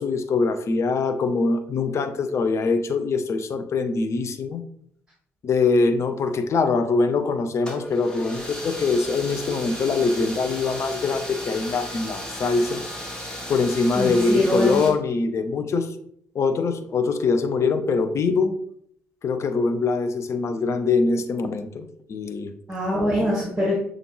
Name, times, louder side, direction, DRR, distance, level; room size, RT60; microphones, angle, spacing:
voice 1, 0.0-4.6 5.4-12.8 13.5-15.9 16.3-18.6 19.2-22.5, left 4 dB, 45° left, 9 dB, 0.6 m, -23 dB
sound 1, 7.6-14.9, equal, 10° left, 1.6 m, -35 dB
voice 2, 14.0-14.8 22.7-23.7, left 1 dB, 15° right, -5 dB, 1.5 m, -23 dB
6.7 x 2.5 x 3.1 m, 0.67 s
figure-of-eight pair, 45°, 7 cm